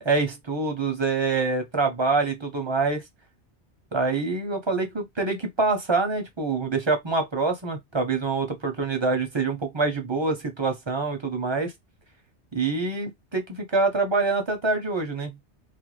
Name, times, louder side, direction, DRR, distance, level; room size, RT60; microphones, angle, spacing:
voice 1, 0.0-3.0 3.9-11.7 12.5-15.4, right 3 dB, 35° right, 0.5 m, -25 dB
2.5 x 2.2 x 3.0 m
omnidirectional pair, 1.2 m